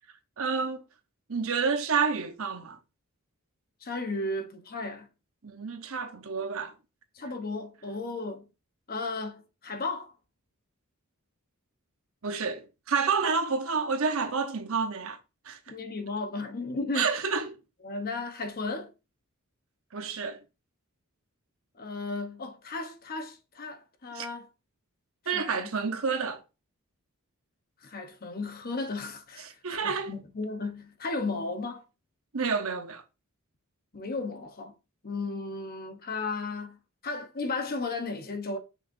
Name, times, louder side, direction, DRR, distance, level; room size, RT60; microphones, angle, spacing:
voice 1, 0.4-0.8 1.3-2.8 5.4-6.7 12.2-15.2 15.4-15.6 16.9-17.6 19.9-20.4 24.1-24.3 25.3-26.4 29.4-30.1 32.3-33.0, right 5 dB, 65° right, 0.9 m, -29 dB
voice 2, 3.8-5.1 7.1-8.5 8.9-10.1 15.7-17.1 17.8-18.9 21.8-24.5 25.3-25.7 27.8-31.8 33.9-34.7 35.0-36.8 37.0-38.6, left 3 dB, 45° left, 1.0 m, -34 dB
6.1 x 5.8 x 2.6 m
head